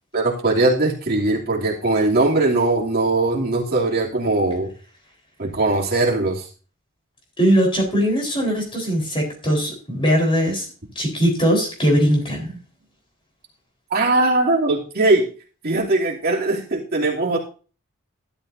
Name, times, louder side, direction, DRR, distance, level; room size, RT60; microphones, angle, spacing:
voice 1, 0.1-4.7 5.4-6.5 13.9-15.3 15.6-17.4, right 2 dB, 45° right, -3 dB, 2.9 m, -20 dB
voice 2, 7.4-10.7 11.0-12.5, equal, 25° left, 0 dB, 4.3 m, -20 dB
13.5 x 12.0 x 2.7 m, 0.38 s
head